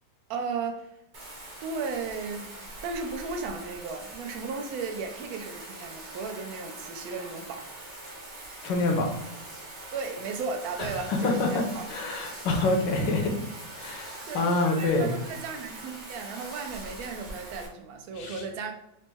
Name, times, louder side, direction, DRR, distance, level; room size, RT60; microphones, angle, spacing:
voice 1, 0.3-0.9 1.6-7.7 9.9-11.8 14.3-18.7, right 4 dB, 75° right, 0.9 m, -35 dB
Bathtub (filling or washing), 1.1-17.7, right 2 dB, 40° right, 0.7 m, -43 dB
voice 2, 8.6-9.1 10.8-13.3 13.7-15.1 18.1-18.4, left 2 dB, 75° left, 1.3 m, -27 dB
4.1 x 2.0 x 3.4 m
omnidirectional pair, 2.0 m